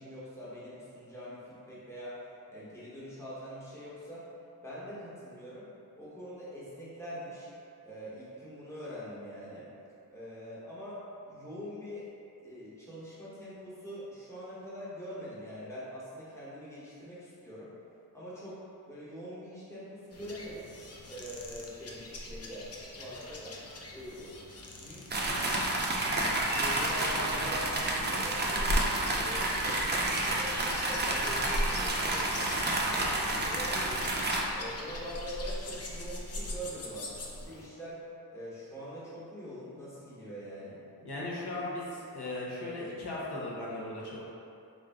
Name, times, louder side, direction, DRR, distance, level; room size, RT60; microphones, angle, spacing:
voice 1, 0.0-2.2 2.5-4.3 4.6-5.7 6.0-7.5 7.8-9.7 10.1-11.0 11.2-12.1 12.4-17.7 18.1-18.6 18.9-20.7 21.1-23.6 23.9-25.5 26.6-28.7 29.1-34.1 34.5-38.0 38.3-40.8, equal, 5° left, -10 dB, 1.0 m, -44 dB
sound 1, 20.1-37.7, left 1 dB, 40° left, 0.4 m, -41 dB
sound 2, 25.1-34.4, right 2 dB, 30° right, 0.4 m, -30 dB
voice 2, 41.0-44.2, left 2 dB, 85° left, -6 dB, 0.8 m, -37 dB
3.6 x 2.5 x 3.4 m, 2.6 s
wide cardioid pair, 125°, 39 cm